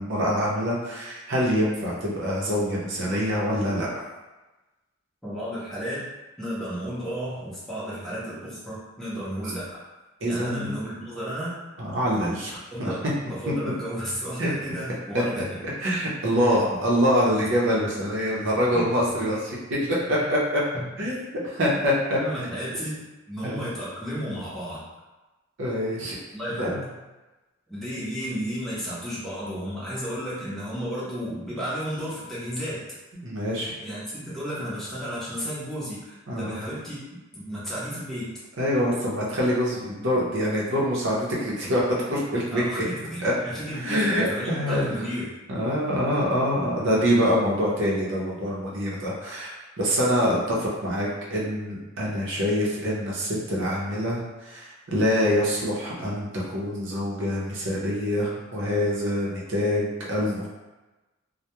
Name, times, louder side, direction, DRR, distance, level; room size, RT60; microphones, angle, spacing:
voice 1, 0.0-3.9 10.2-10.7 11.8-12.9 14.4-14.5 15.8-20.6 21.0-22.2 23.4-23.6 25.6-26.2 26.5-26.9 33.2-33.7 36.3-36.6 38.6-42.8 43.2-43.3 43.8-44.9 45.5-60.5, equal, 65° right, -5 dB, 0.7 m, -25 dB
voice 2, 5.2-6.1 6.4-9.8 10.3-11.6 12.7-15.6 17.4-17.8 18.7-18.9 20.2-20.3 20.7-20.8 21.7-21.9 22.2-24.8 26.3-26.8 27.7-32.9 33.8-37.0 37.3-38.3 42.5-45.3, equal, ahead, -10 dB, 0.7 m, -33 dB
2.2 x 2.1 x 2.9 m, 1.1 s
head